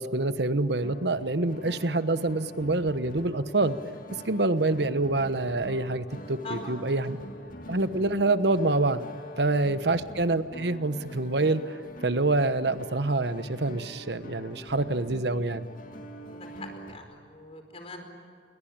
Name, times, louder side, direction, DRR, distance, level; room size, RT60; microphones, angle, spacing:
voice 1, 0.0-3.8 4.2-7.2 7.7-9.0 9.4-11.8 12.0-15.7, right 2 dB, 70° right, 12 dB, 1.2 m, -26 dB
sound 1, 0.8-17.0, equal, 50° left, 2.2 m, -45 dB
voice 2, 6.4-6.8 9.3-9.5 16.3-18.0, left 2 dB, 35° left, 5 dB, 4.6 m, -42 dB
28.5 x 22.5 x 8.9 m, 2.2 s
head